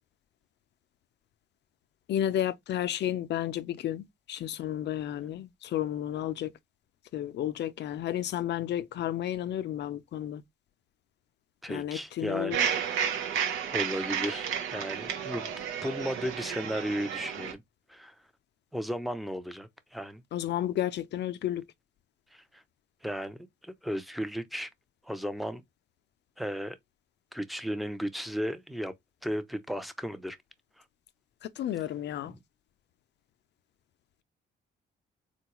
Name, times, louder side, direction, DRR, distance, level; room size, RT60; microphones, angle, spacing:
voice 1, 2.1-6.5 7.1-10.4 11.7-12.7 20.3-21.6 31.4-32.3, left 11 dB, 60° left, 0.4 m, -32 dB
voice 2, 11.6-12.6 13.7-15.5 15.8-17.6 17.9-18.1 18.7-20.2 22.3-22.6 23.0-24.7 25.0-25.6 26.4-26.8 27.3-28.9 29.2-30.4 32.2-32.4, equal, ahead, 0.5 m, -35 dB
sound 1, 12.5-17.5, right 8 dB, 85° right, 0.7 m, -32 dB
3.8 x 2.3 x 2.9 m
cardioid pair, 90°, 20 cm